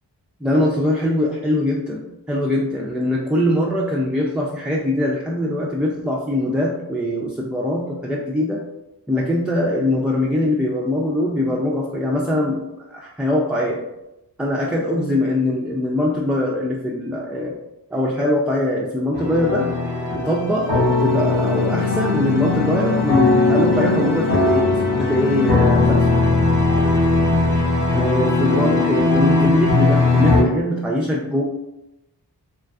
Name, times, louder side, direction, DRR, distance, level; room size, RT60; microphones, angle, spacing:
voice 1, 0.4-8.6 9.1-12.6 12.9-13.8 14.4-17.5 17.9-19.7 20.2-26.1 27.9-31.4, left 1 dB, ahead, -4 dB, 0.3 m, -22 dB
sound 1, 19.1-30.4, left 3 dB, 70° left, 1.2 m, -18 dB
3.1 x 2.4 x 2.3 m, 0.94 s
cardioid pair, 45°, 42 cm